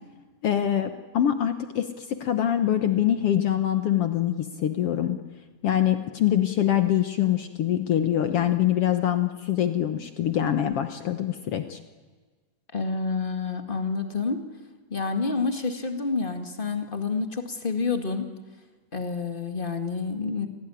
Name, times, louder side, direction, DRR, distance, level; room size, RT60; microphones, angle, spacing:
voice 1, 0.4-5.2 5.6-11.8, left 11 dB, 75° left, 8 dB, 1.3 m, -24 dB
voice 2, 12.7-14.4 14.9-18.3 18.9-20.5, left 4 dB, 25° left, 6 dB, 1.1 m, -28 dB
29.0 x 17.5 x 9.9 m, 1.4 s
omnidirectional pair, 4.2 m